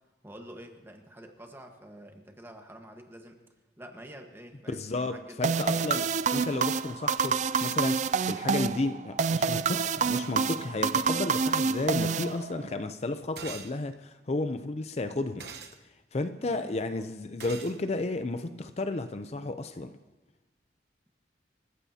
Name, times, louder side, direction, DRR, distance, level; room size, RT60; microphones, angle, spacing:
voice 1, 0.2-3.4 3.8-6.1 16.4-17.1, equal, 15° right, 1.3 m, -48 dB
voice 2, 4.7-6.1 6.3-15.5 16.1-20.0, left 2 dB, 35° left, 0.5 m, -32 dB
sound 1, 5.4-12.8, right 5 dB, 40° right, 0.4 m, -27 dB
sound 2, 13.4-13.7 15.4-15.8 17.4-17.8, right 6 dB, 65° right, 1.1 m, -42 dB
27.5 x 15.0 x 2.8 m
head